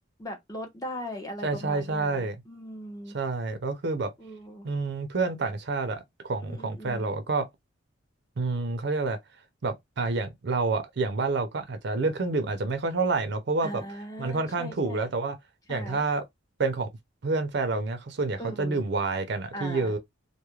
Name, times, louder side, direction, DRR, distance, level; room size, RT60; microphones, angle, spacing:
voice 1, 0.2-3.2 4.2-4.7 6.4-7.0 13.6-15.0 15.7-16.0 18.4-18.8 19.5-19.9, equal, 20° left, 0.7 m, -39 dB
voice 2, 1.4-2.4 3.1-4.1 4.6-7.5 8.4-9.2 9.6-13.8 14.2-15.4 15.7-16.2 16.6-16.9 17.2-20.0, right 3 dB, 55° right, 0.5 m, -28 dB
2.3 x 2.1 x 2.9 m
head